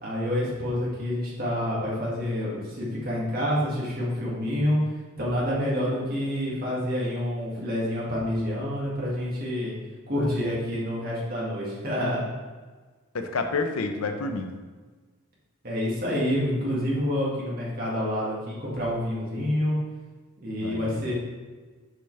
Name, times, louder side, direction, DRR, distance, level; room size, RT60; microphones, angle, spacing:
voice 1, 0.0-4.8 5.2-9.7 10.1-12.2 15.6-19.8 20.4-21.1, left 1 dB, 45° right, -6 dB, 2.1 m, -28 dB
voice 2, 13.1-14.5 20.6-21.1, left 3 dB, 90° left, 6 dB, 0.7 m, -29 dB
6.7 x 5.6 x 3.3 m, 1.4 s
head